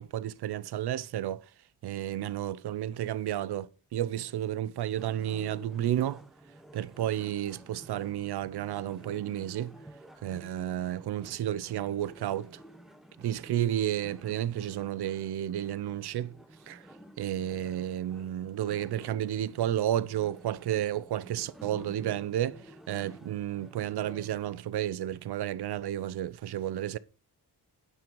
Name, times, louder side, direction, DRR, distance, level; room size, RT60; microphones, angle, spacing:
voice 1, 0.0-1.4 1.8-6.2 6.7-9.7 10.2-12.6 13.2-16.3 16.7-16.8 17.2-27.0, right 11 dB, 70° right, 0.6 m, -32 dB
sound 1, 5.0-24.5, right 1 dB, ahead, 0.9 m, -52 dB
8.9 x 6.0 x 4.6 m
cardioid pair, 80°, 41 cm